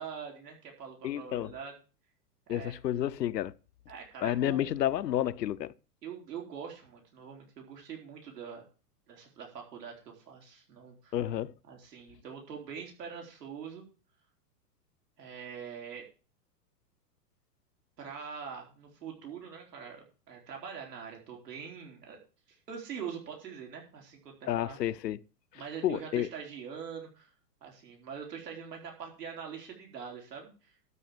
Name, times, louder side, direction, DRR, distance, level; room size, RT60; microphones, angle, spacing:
voice 1, 0.0-1.7 2.5-2.7 3.9-4.7 6.0-8.6 9.1-11.2 11.6-13.8 15.2-16.0 18.0-22.2 22.5-24.8 25.5-27.3 27.6-30.7, right 7 dB, 80° right, 4.2 m, -43 dB
voice 2, 1.0-1.5 2.5-3.5 4.2-5.7 11.1-11.5 24.5-25.2 25.8-26.3, left 12 dB, 85° left, 0.8 m, -30 dB
12.5 x 5.3 x 7.5 m
hypercardioid pair, 120°, 48 cm